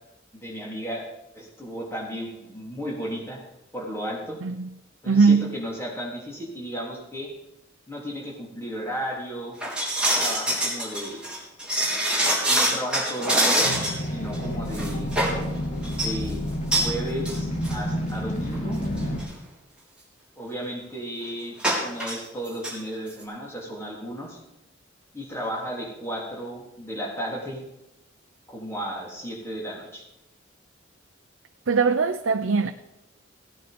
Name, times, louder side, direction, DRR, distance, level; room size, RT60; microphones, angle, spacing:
voice 1, 0.3-1.1 1.3-3.4 3.7-4.4 5.0-7.3 7.9-9.6 10.2-11.2 12.5-15.2 15.8-16.4 16.7-18.8 20.4-21.6 21.8-24.4 25.1-27.6 28.5-30.1, equal, 15° left, 3.6 m, -34 dB
voice 2, 5.1-5.5 31.7-32.7, right 4 dB, 80° right, 0.6 m, -20 dB
sound 1, 9.6-14.0 14.3-14.4 14.7-15.4 15.8-16.1 16.7-16.9 17.2-17.4 17.6-17.7 18.5-18.6 19.0-19.2 21.6-22.2 22.4-22.7 23.1-23.2, right 1 dB, 5° right, 3.7 m, -24 dB
sound 2, 13.6-19.2, equal, 40° left, 2.6 m, -30 dB
17.5 x 9.5 x 5.3 m
head